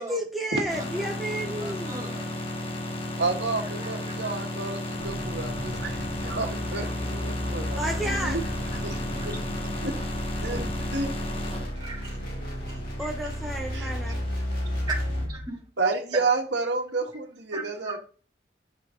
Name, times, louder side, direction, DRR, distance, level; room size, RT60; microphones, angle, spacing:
voice 1, 0.0-2.2 7.7-8.4 13.0-14.2, right 1 dB, ahead, -1 dB, 1.0 m, -31 dB
sound 1, 0.7-15.3, left 1 dB, 30° left, 1.7 m, -35 dB
voice 2, 1.3-2.4 3.6-4.4 6.7-6.8 7.5-8.2 8.4-8.8 9.2-9.4 10.4-10.7 11.7-12.2 12.7-13.3 13.8-14.1 14.8-15.7 16.1-16.3 17.5-18.0, right 3 dB, 25° right, 0 dB, 3.2 m, -39 dB
voice 3, 3.2-8.4 8.8-9.0 9.2-9.3 9.8-10.0 10.4-10.6 10.9-11.1 11.5-11.6 13.7-14.2 15.8-18.0, right 3 dB, 80° right, 2 dB, 1.8 m, -30 dB
sound 2, 5.0-15.5, equal, 55° left, 3.5 m, -33 dB
12.0 x 7.2 x 3.9 m, 0.40 s
head